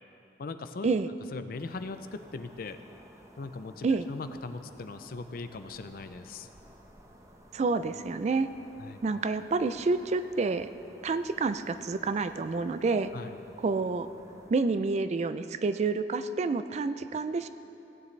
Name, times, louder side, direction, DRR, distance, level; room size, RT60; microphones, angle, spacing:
voice 1, 0.4-0.9 1.3-2.8 3.4-6.5 8.8-9.0 13.1-13.4, left 3 dB, 55° left, 10 dB, 0.5 m, -39 dB
sound 1, 1.5-14.5, right 1 dB, 15° right, 0.8 m, -55 dB
voice 2, 7.5-8.5 9.0-10.7 11.0-13.1 13.6-14.1 14.5-17.5, right 4 dB, 40° right, 11 dB, 0.3 m, -28 dB
17.5 x 9.1 x 3.3 m, 2.9 s
head